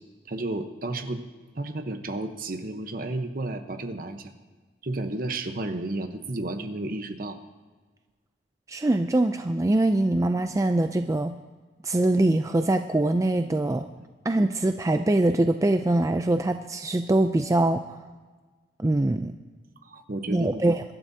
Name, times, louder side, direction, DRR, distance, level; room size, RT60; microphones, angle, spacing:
voice 1, 0.3-1.2 1.5-4.3 4.8-7.4 19.8-20.6, right 2 dB, 50° right, 7 dB, 1.0 m, -32 dB
voice 2, 8.7-11.3 11.8-13.8 14.2-18.0 18.8-19.4 20.3-20.8, right 2 dB, 15° right, 7 dB, 0.3 m, -23 dB
23.5 x 12.0 x 2.8 m, 1.4 s
head